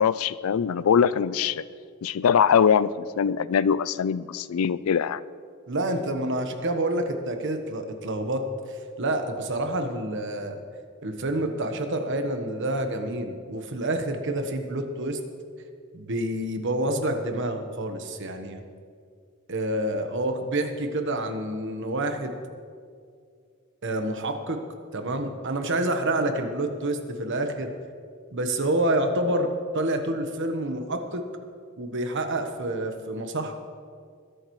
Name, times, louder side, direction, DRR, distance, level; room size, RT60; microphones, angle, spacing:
voice 1, 0.0-1.6 2.0-5.2, left 7 dB, 80° left, 18 dB, 0.4 m, -22 dB
voice 2, 5.7-10.6 11.0-15.2 15.9-18.6 19.5-22.3 23.8-24.6 24.9-27.7 28.3-31.2 31.8-33.5, right 1 dB, 60° right, 6 dB, 1.2 m, -28 dB
21.0 x 11.5 x 3.2 m, 2.2 s
head